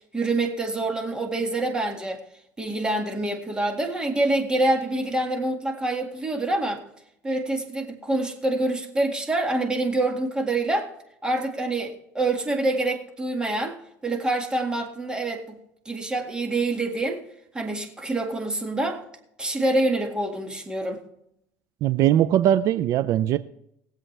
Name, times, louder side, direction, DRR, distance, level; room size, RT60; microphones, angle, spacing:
voice 1, 0.1-2.2 2.6-6.8 7.2-10.9 11.2-15.6 15.9-17.2 17.5-19.0 19.4-21.0, right 2 dB, 15° right, 2.0 m, -26 dB
voice 2, 21.8-23.4, right 11 dB, 55° right, 0.5 m, -20 dB
21.0 x 7.7 x 3.3 m
supercardioid pair, 115°, 6 cm